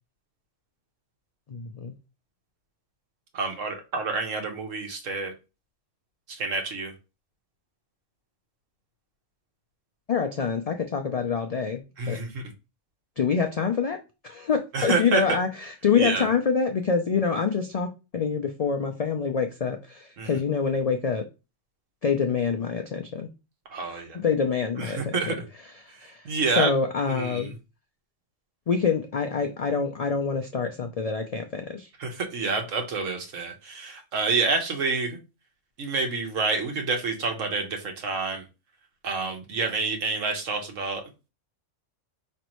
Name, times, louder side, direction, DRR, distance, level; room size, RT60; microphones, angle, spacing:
voice 1, 1.5-1.9 10.1-12.2 13.2-21.3 22.0-23.3 23.8-27.5 28.7-31.9, left 5 dB, 80° left, 5 dB, 0.3 m, -26 dB
voice 2, 3.3-5.3 6.3-6.9 12.0-12.4 14.7-15.4 16.0-16.3 20.2-20.3 23.7-24.2 24.8-25.5 26.2-26.7 27.1-27.5 32.0-35.2 35.8-38.4 39.0-41.0, right 4 dB, 90° right, 4 dB, 1.4 m, -28 dB
5.1 x 3.2 x 3.0 m, 0.29 s
omnidirectional pair, 1.3 m